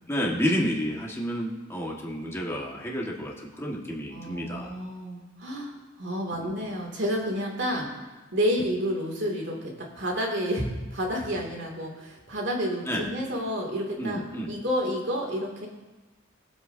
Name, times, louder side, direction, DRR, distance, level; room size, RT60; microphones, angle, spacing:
voice 1, 0.1-4.7 6.4-6.6 12.9-13.1 14.0-14.5, equal, 15° left, -2 dB, 1.5 m, -30 dB
voice 2, 4.1-5.7 6.0-7.9 8.3-15.7, equal, 60° right, -2 dB, 2.4 m, -30 dB
21.5 x 7.8 x 2.7 m, 1.2 s
head